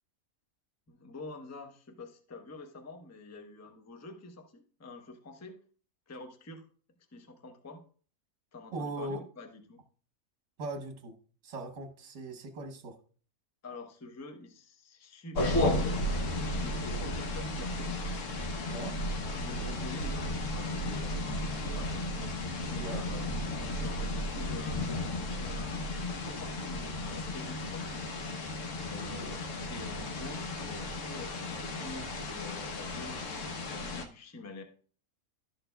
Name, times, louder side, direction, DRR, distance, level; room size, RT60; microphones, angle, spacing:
voice 1, 0.9-5.6 6.1-6.7 7.1-7.8 8.5-9.8 13.6-17.9 18.6-18.9 19.4-22.1 22.7-24.8 25.3-28.1 28.7-29.4 29.7-34.6, left 2 dB, 15° left, 6 dB, 0.6 m, -47 dB
voice 2, 8.7-9.2 10.6-11.2 11.4-13.0 18.7-18.9 22.8-23.0 28.9-29.3, right 2 dB, 60° right, 5 dB, 1.3 m, -39 dB
sound 1, 15.4-34.1, left 1 dB, 60° left, 1.2 m, -34 dB
12.0 x 6.6 x 2.2 m, 0.42 s
omnidirectional pair, 1.5 m